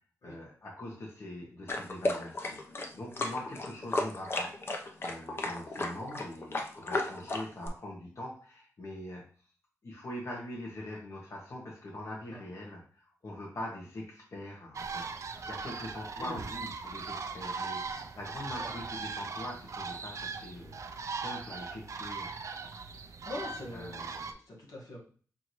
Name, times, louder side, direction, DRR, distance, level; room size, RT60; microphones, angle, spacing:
voice 1, 0.2-9.2 9.8-17.8 18.2-20.7 21.1-22.3 23.7-24.3, left 1 dB, 55° left, -3 dB, 1.2 m, -43 dB
sound 1, 1.7-7.7, left 2 dB, 40° left, 0.7 m, -34 dB
sound 2, 14.7-24.3, right 4 dB, 55° right, 0.5 m, -39 dB
voice 2, 23.2-25.0, left 1 dB, 80° left, -3 dB, 1.6 m, -43 dB
6.0 x 2.7 x 3.1 m, 0.43 s
wide cardioid pair, 95°, 6 cm